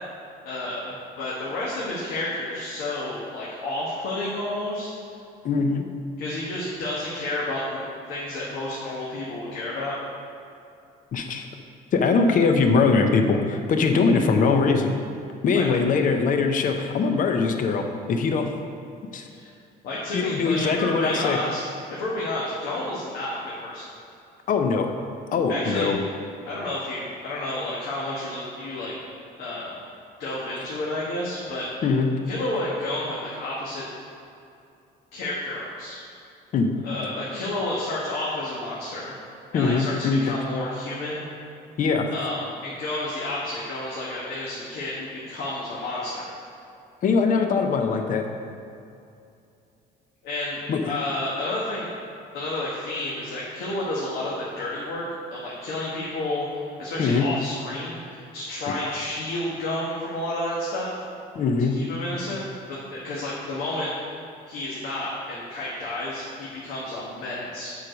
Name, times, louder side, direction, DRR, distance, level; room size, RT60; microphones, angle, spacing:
voice 1, 0.4-4.9 6.2-7.8 8.1-9.9 15.5-15.7 19.4-19.5 19.8-23.8 25.5-25.9 26.5-28.9 29.4-29.8 30.2-31.7 32.3-33.8 35.1-36.0 36.8-39.1 39.5-41.3 42.1-46.3 50.2-51.9 52.3-55.0 55.3-61.0 61.7-62.4 62.7-64.1 64.5-67.8, left 1 dB, 75° left, -7 dB, 1.5 m, -31 dB
voice 2, 5.4-5.9 11.1-11.5 11.9-14.9 15.4-18.5 19.1-19.3 20.1-21.4 24.5-24.9 25.3-26.0 31.8-32.1 36.5-36.7 39.5-40.3 41.8-42.1 47.0-48.2 50.7-50.8 57.0-57.3 61.3-61.8, left 4 dB, 50° left, 5 dB, 0.8 m, -22 dB
7.4 x 4.8 x 5.2 m, 2.6 s
cardioid pair, 110°, 17 cm